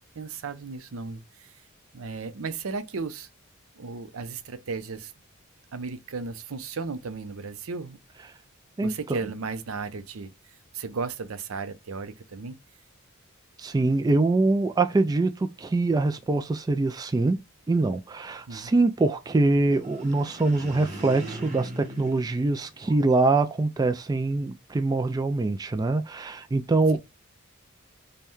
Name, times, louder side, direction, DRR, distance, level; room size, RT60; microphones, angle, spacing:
voice 1, 0.2-1.6 1.9-3.3 3.8-5.1 5.7-8.0 8.8-10.3 10.7-12.6 18.5-18.7, right 4 dB, 80° right, 0.6 m, -35 dB
voice 2, 8.8-9.2 13.6-17.4 17.7-27.0, right 3 dB, 20° right, 0.3 m, -24 dB
sound 1, 19.7-23.3, right 1 dB, 35° right, 1.0 m, -40 dB
5.3 x 2.2 x 3.0 m
head